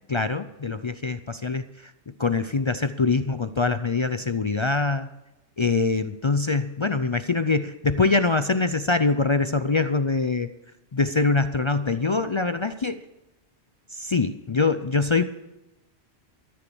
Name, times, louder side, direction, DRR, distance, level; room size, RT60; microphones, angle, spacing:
voice 1, 0.1-1.9 2.2-5.1 5.6-10.5 10.9-13.0 13.9-15.2, left 4 dB, 40° left, 11 dB, 0.4 m, -24 dB
13.0 x 10.0 x 7.0 m, 0.98 s
omnidirectional pair, 1.1 m